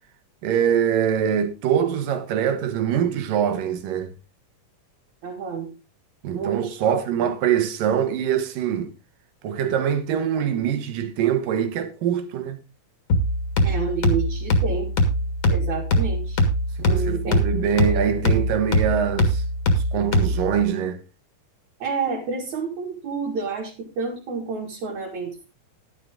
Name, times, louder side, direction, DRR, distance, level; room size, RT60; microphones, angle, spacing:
voice 1, 0.4-4.1 6.2-8.9 9.4-12.6 16.8-19.4 19.9-21.0, right 8 dB, 90° right, 3.0 m, -23 dB
voice 2, 5.2-5.7 6.3-7.0 13.6-14.9 15.5-16.5 16.8-17.4 21.8-25.4, right 5 dB, 60° right, 3.2 m, -29 dB
sound 1, 13.1-20.6, equal, 50° left, 2.6 m, -22 dB
12.0 x 10.5 x 3.7 m
omnidirectional pair, 3.8 m